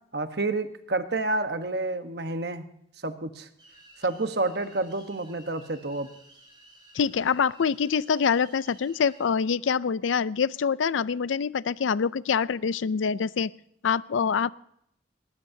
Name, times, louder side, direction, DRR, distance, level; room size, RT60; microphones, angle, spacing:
voice 1, 0.1-2.6 3.0-3.5 4.0-6.1, right 2 dB, 55° right, 8 dB, 1.1 m, -29 dB
sound 1, 3.6-9.3, right 1 dB, 25° right, 5.2 m, -54 dB
voice 2, 6.9-13.5 13.8-14.5, left 6 dB, 90° left, 19 dB, 0.4 m, -25 dB
19.0 x 19.0 x 2.7 m, 0.71 s
head